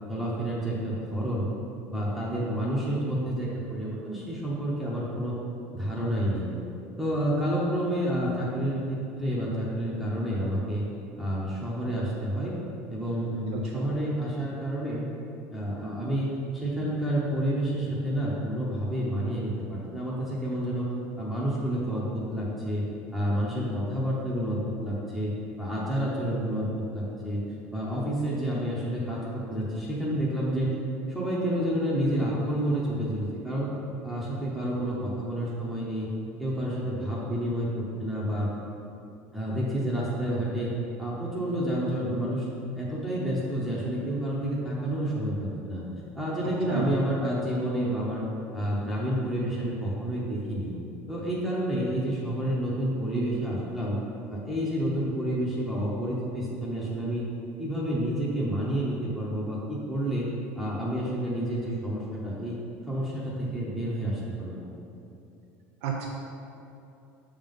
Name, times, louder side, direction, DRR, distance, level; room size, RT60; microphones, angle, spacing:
voice 1, 0.1-1.5 1.9-5.4 5.7-6.5 7.0-10.8 11.2-12.5 12.9-15.0 15.5-20.9 21.2-22.9 23.1-25.3 25.6-27.4 27.7-30.7 31.1-33.7 34.0-36.1 36.4-38.5 39.3-40.7 41.0-42.5 42.8-45.8 46.1-48.2 48.5-50.7 51.1-54.0 54.3-57.3 57.6-60.3 60.6-62.6 62.9-64.7, right 1 dB, ahead, -8 dB, 0.8 m, -29 dB
voice 2, 13.5-13.8 46.7-46.9 65.8-66.1, right 6 dB, 80° right, -1 dB, 0.7 m, -32 dB
6.5 x 3.6 x 5.3 m, 2.8 s
cardioid pair, 165°, 6 cm